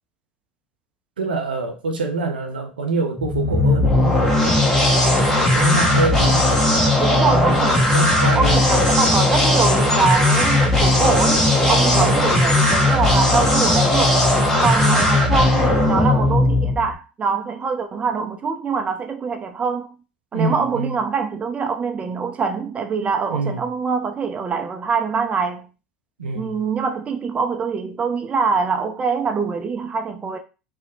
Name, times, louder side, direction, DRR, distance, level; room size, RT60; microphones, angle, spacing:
voice 1, 1.2-4.2 4.6-5.1 5.5-8.6 11.9-12.3 20.3-21.0 23.3-23.6 26.2-26.6, right 3 dB, 80° right, 0.5 m, -26 dB
sound 1, 3.2-16.9, left 1 dB, 5° left, 0.9 m, -17 dB
voice 2, 7.0-7.9 8.3-14.2 14.6-19.9 20.3-25.7 26.3-30.4, right 5 dB, 25° right, 0.4 m, -24 dB
2.7 x 2.0 x 2.6 m
hypercardioid pair, 80°, 5 cm